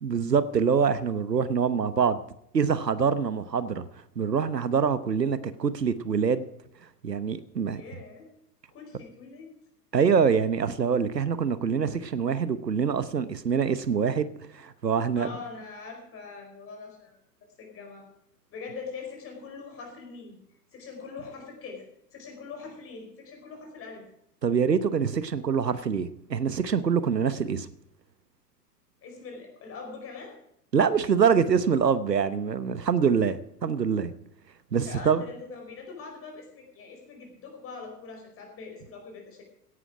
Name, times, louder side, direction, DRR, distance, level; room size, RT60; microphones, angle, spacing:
voice 1, 0.0-2.2 2.5-3.8 4.2-6.5 7.0-7.8 9.9-15.3 24.4-27.7 30.7-34.1 34.7-35.2, right 6 dB, 80° right, 1.1 m, -25 dB
voice 2, 7.7-8.3 8.7-9.6 15.1-17.2 17.6-18.1 18.5-20.4 20.7-21.8 22.1-24.1 29.0-30.3 34.8-39.4, left 4 dB, 25° left, 4.9 m, -42 dB
16.5 x 11.0 x 5.0 m
figure-of-eight pair, 95°, 48 cm